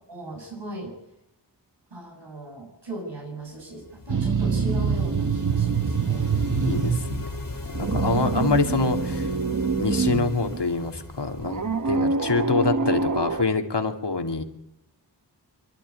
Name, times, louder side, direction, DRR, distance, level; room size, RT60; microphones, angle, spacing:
voice 1, 0.1-0.9 1.9-6.3 7.9-8.3, right 1 dB, 90° right, 0 dB, 7.9 m, -38 dB
sound 1, 3.7-12.4, left 3 dB, 50° left, 2.7 m, -37 dB
sound 2, 4.1-7.2 7.5-10.6 11.4-13.4, right 5 dB, 50° right, 1.0 m, -25 dB
voice 2, 6.6-7.1 7.8-9.3 9.8-14.4, left 4 dB, 75° left, 5 dB, 2.5 m, -26 dB
26.5 x 12.0 x 8.7 m, 0.79 s
wide cardioid pair, 55°, 41 cm